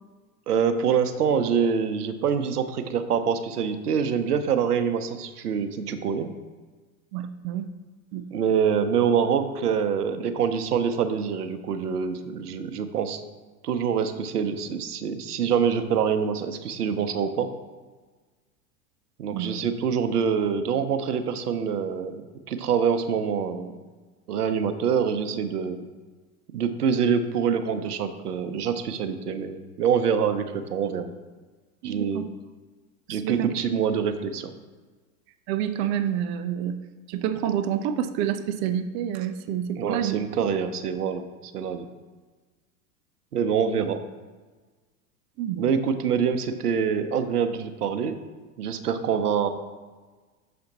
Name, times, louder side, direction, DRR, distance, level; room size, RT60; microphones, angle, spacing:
voice 1, 0.5-6.3 8.3-13.2 13.6-17.5 19.2-23.8 24.3-25.9 26.5-31.1 31.8-32.2 33.1-34.5 39.8-41.2 41.5-41.8 43.3-44.0 45.6-48.2 48.6-49.5, right 7 dB, 85° right, 9 dB, 0.7 m, -25 dB
voice 2, 7.1-7.6 8.1-8.2 19.3-19.5 31.8-32.3 33.1-33.6 35.5-36.8 37.1-40.2 45.4-45.7, right 10 dB, 40° right, 10 dB, 0.5 m, -28 dB
6.8 x 4.3 x 4.0 m, 1.3 s
hypercardioid pair, 90°, 45 cm